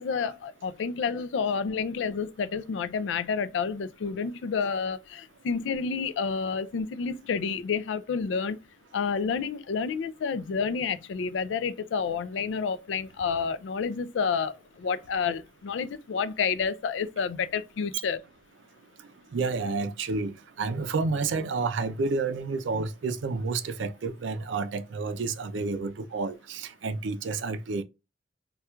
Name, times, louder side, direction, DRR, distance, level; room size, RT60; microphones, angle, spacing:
voice 1, 0.0-8.6 8.9-18.2, left 5 dB, 85° left, 0.4 m, -29 dB
voice 2, 19.3-20.3 20.6-27.8, right 4 dB, 85° right, 0.4 m, -30 dB
4.3 x 2.3 x 2.3 m
head